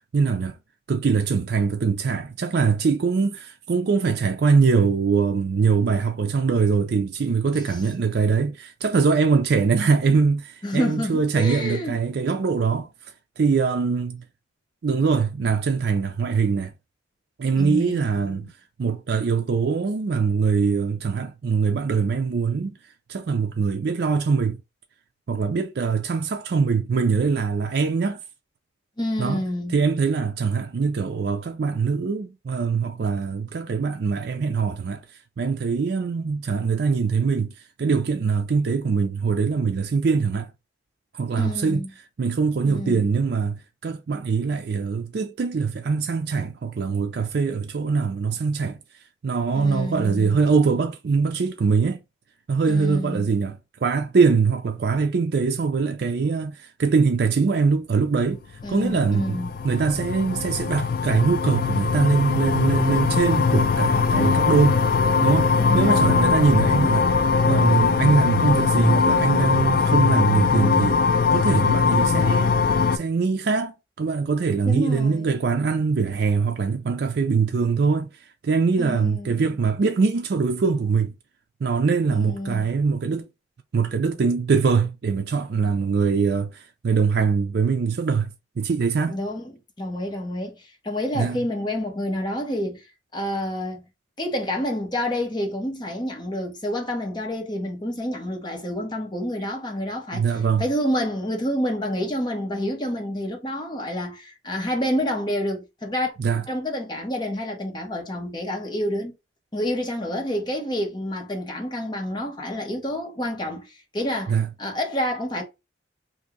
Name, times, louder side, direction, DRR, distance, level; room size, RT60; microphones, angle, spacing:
voice 1, 0.1-0.6 0.9-12.9 13.4-14.2 14.8-16.7 17.4-18.5 18.8-22.7 23.1-24.6 25.3-28.2 29.2-29.4 29.7-35.0 35.4-37.5 37.8-40.5 41.1-41.8 42.2-48.8 49.2-52.0 52.5-58.4 58.7-64.8 65.2-67.1 67.4-71.0 71.3-72.5 72.9-78.1 78.4-81.1 81.6-83.3 83.7-88.3 88.6-89.2 91.2-91.4 100.1-100.6 106.2-106.4 114.3-114.5, right 5 dB, 55° right, 0.4 m, -22 dB
voice 2, 10.6-12.0 17.6-18.5 29.0-29.8 41.3-41.9 42.7-43.1 49.6-50.4 52.7-53.3 58.6-59.5 65.6-66.4 74.7-75.3 78.8-79.5 82.1-82.7 89.1-92.9 93.1-93.8 94.2-100.3 100.6-106.1 106.5-109.1 109.5-115.4, left 1 dB, 25° left, 1.1 m, -28 dB
sound 1, 58.6-73.0, left 5 dB, 50° left, 0.4 m, -21 dB
2.9 x 2.6 x 3.6 m
head